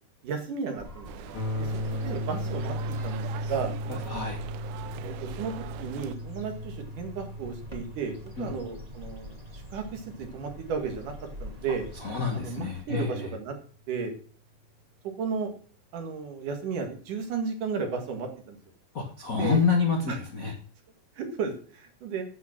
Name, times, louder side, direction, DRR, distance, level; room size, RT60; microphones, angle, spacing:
voice 1, 0.2-1.1 1.6-3.7 4.9-11.1 11.4-11.9 12.3-13.5 13.9-14.1 15.2-15.5 15.9-18.6 19.4-19.6 20.1-20.2 21.1-22.2, right 5 dB, 60° right, 4 dB, 3.2 m, -34 dB
sound 1, 0.8-12.8, equal, 15° right, 1.2 m, -45 dB
sound 2, 1.1-6.2, right 13 dB, 85° right, 1.8 m, -43 dB
sound 3, 1.3-11.3, equal, 65° left, 3.4 m, -36 dB
voice 2, 3.9-4.4 8.4-8.5 11.9-13.3 18.9-20.5, left 5 dB, 90° left, 1 dB, 0.7 m, -28 dB
9.4 x 8.3 x 6.0 m, 0.42 s
omnidirectional pair, 4.2 m